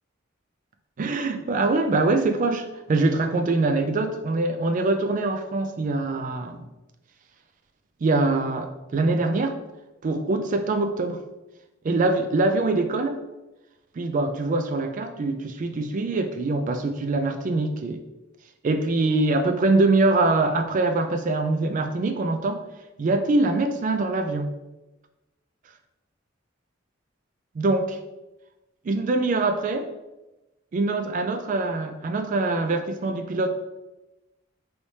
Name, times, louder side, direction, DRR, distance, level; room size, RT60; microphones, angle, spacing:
voice 1, 1.0-6.6 8.0-9.6 10.0-11.2 11.8-13.2 14.0-18.0 18.6-22.6 23.0-24.5 27.5-28.0 28.8-29.9 30.7-33.5, right 2 dB, 40° right, 7 dB, 0.3 m, -23 dB
3.2 x 3.2 x 2.7 m, 1.0 s
head